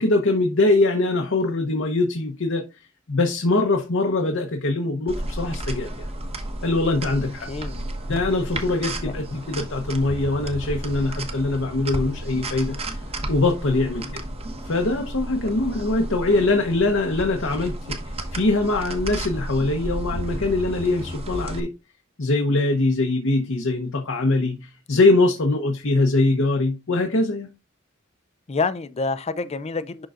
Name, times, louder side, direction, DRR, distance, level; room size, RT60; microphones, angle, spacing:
voice 1, 0.0-2.6 3.1-6.1 6.6-7.5 8.1-12.8 13.3-14.2 14.6-18.0 18.3-21.7 22.2-27.5, left 2 dB, 65° left, 1.0 m, -22 dB
sound 1, 5.1-21.6, right 1 dB, 30° right, 1.1 m, -32 dB
voice 2, 7.5-7.9 9.1-9.2 13.9-14.3 15.6-15.7 28.5-30.1, left 4 dB, 30° left, 0.5 m, -28 dB
11.0 x 3.8 x 2.5 m
head